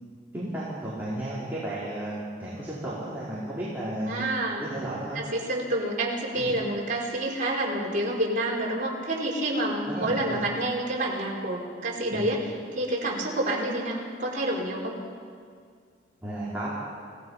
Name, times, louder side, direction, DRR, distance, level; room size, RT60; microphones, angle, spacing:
voice 1, 0.3-4.3 4.6-5.2 6.3-6.5 9.9-10.4 12.1-12.2 16.2-16.7, right 1 dB, 10° right, -10 dB, 4.7 m, -33 dB
voice 2, 4.1-4.6 5.1-12.4 12.7-15.0, right 1 dB, 45° right, -4 dB, 4.7 m, -28 dB
29.0 x 17.5 x 5.8 m, 2.1 s
head